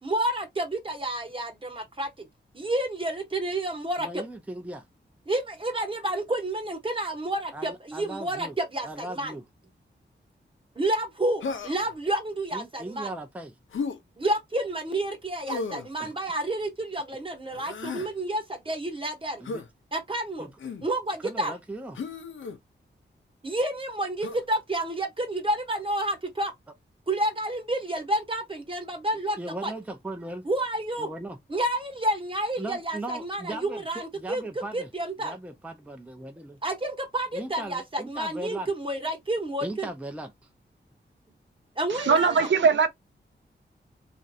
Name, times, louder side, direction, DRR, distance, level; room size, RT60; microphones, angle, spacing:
voice 1, 0.0-2.3 2.5-4.2 5.3-9.4 10.7-13.1 14.2-19.4 19.9-20.5 20.8-21.5 23.4-26.5 27.1-29.7 30.4-31.1 31.5-35.3 36.6-39.9 41.8-42.5, right 1 dB, 25° right, 1.1 m, -30 dB
voice 2, 4.0-4.8 7.5-8.6 8.8-9.4 12.5-13.5 15.8-16.1 19.4-19.6 20.4-20.5 21.2-22.0 29.4-30.4 31.0-31.4 32.6-34.9 35.2-36.6 37.3-38.7 39.6-40.3, right 1 dB, 5° right, 0.5 m, -38 dB
Human voice, 11.4-12.0 13.7-14.0 15.5-15.9 17.5-18.1 19.4-19.7 20.6-20.9 21.9-22.6 24.2-24.4, left 4 dB, 85° left, 0.6 m, -34 dB
voice 3, 41.9-42.9, right 5 dB, 75° right, 0.5 m, -21 dB
3.1 x 2.5 x 2.7 m
wide cardioid pair, 115°, 20 cm